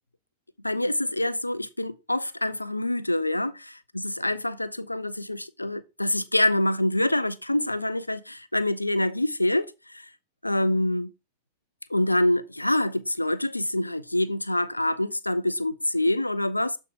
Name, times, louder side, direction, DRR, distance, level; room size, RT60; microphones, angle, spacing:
voice 1, 0.6-3.7 4.0-10.0 10.4-11.1 11.9-16.8, left 1 dB, 85° left, 0.4 m, -26 dB
12.5 x 4.7 x 2.5 m
figure-of-eight pair, 90°, 0 cm